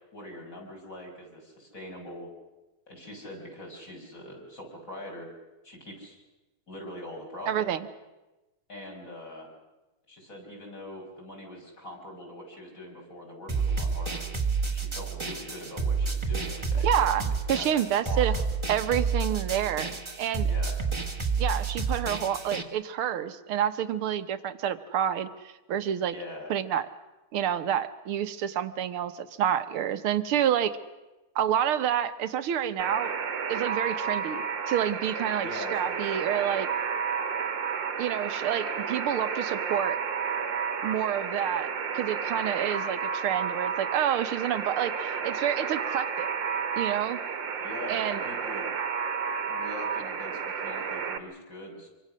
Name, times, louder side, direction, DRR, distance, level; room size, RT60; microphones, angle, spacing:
voice 1, 0.1-2.3 2.9-5.3 5.6-6.2 6.7-7.7 8.7-9.5 10.1-14.3 14.7-17.7 18.0-18.4 20.4-20.8 26.1-26.5 35.4-36.3 47.6-48.7 49.5-51.9, left 1 dB, 40° left, 0 dB, 6.2 m, -43 dB
voice 2, 7.5-7.9 16.8-18.3 18.7-20.5 21.4-26.1 26.5-26.9 27.3-30.8 31.4-33.1 33.5-36.7 38.0-40.0 40.8-41.7 41.9-46.3 46.8-47.2 47.9-48.2, right 10 dB, 90° right, 11 dB, 2.0 m, -28 dB
sound 1, 13.5-22.6, right 5 dB, 15° right, 1.3 m, -29 dB
Alarm, 32.8-51.2, right 6 dB, 65° right, 1.9 m, -31 dB
26.0 x 24.0 x 6.4 m, 1.1 s
omnidirectional pair, 2.3 m